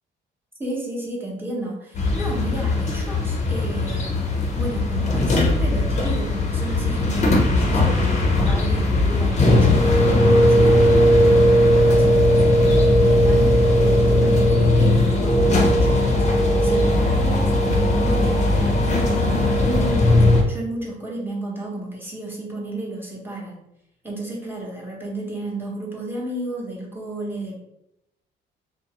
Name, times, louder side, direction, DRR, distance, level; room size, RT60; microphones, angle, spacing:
voice 1, 0.6-4.1 4.5-16.3 16.6-23.6 24.0-27.5, right 1 dB, 10° right, -3 dB, 0.9 m, -32 dB
sound 1, 1.9-20.4, left 1 dB, 35° left, 0.6 m, -18 dB
2.5 x 2.0 x 2.9 m, 0.83 s
cardioid pair, 90°, 20 cm